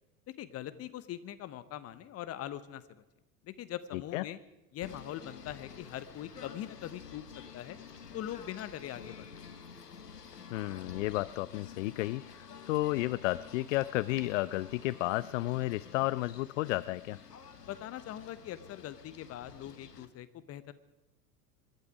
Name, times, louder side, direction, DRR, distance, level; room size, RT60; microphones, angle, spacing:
voice 1, 0.3-3.0 3.4-4.4 4.7-7.3 7.5-7.8 8.1-9.6 17.6-20.7, left 12 dB, 30° left, 14 dB, 1.0 m, -42 dB
voice 2, 3.9-4.2 10.5-17.2, left 18 dB, 55° left, 19 dB, 0.5 m, -32 dB
Singing / Bird, 4.8-20.1, left 6 dB, 85° left, 1.4 m, -50 dB
25.0 x 12.0 x 4.9 m, 1.0 s
figure-of-eight pair, 85°, 46 cm